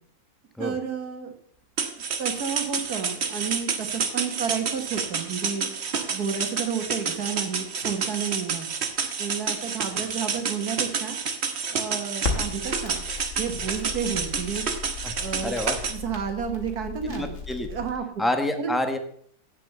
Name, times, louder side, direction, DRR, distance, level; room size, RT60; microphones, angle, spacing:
voice 1, 0.6-1.3 2.2-5.7 6.1-8.7 9.2-11.2 11.7-13.0 13.3-15.5 15.9-17.4 17.7-18.0 18.6-18.7, right 7 dB, 75° right, 6 dB, 2.0 m, -31 dB
sound 1, 1.8-15.9, right 5 dB, 45° right, 1.2 m, -29 dB
Crackle, 12.2-17.9, left 4 dB, 55° left, 2.1 m, -35 dB
voice 2, 15.4-15.8 17.0-17.7 18.2-19.0, left 1 dB, ahead, 7 dB, 0.8 m, -27 dB
8.9 x 7.4 x 6.6 m, 0.63 s
omnidirectional pair, 1.6 m